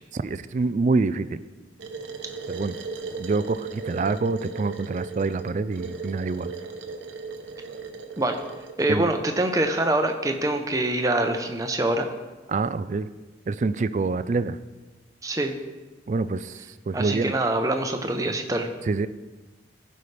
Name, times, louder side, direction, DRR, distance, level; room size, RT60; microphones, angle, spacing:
voice 1, 0.1-1.4 2.5-2.7 3.2-6.5 8.9-9.1 12.5-13.1 13.5-14.6 16.1-17.3 18.9-19.1, right 3 dB, 40° right, 14 dB, 0.3 m, -26 dB
sound 1, 1.8-8.9, right 4 dB, 85° right, 0.8 m, -37 dB
voice 2, 8.8-12.1 15.2-15.5 16.9-18.7, right 1 dB, 20° right, 5 dB, 0.7 m, -24 dB
15.0 x 5.5 x 3.3 m, 1.2 s
head